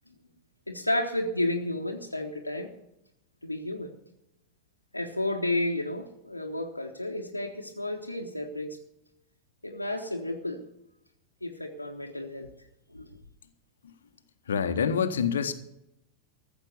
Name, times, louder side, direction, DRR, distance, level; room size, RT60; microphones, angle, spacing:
voice 1, 0.7-2.7 3.4-3.9 4.9-8.8 9.6-10.6 11.4-12.5 12.9-13.0, left 1 dB, 85° left, 1 dB, 1.1 m, -32 dB
voice 2, 14.5-15.5, left 6 dB, 65° left, 11 dB, 1.1 m, -26 dB
14.5 x 7.4 x 8.1 m, 0.83 s
figure-of-eight pair, 90°, 0 cm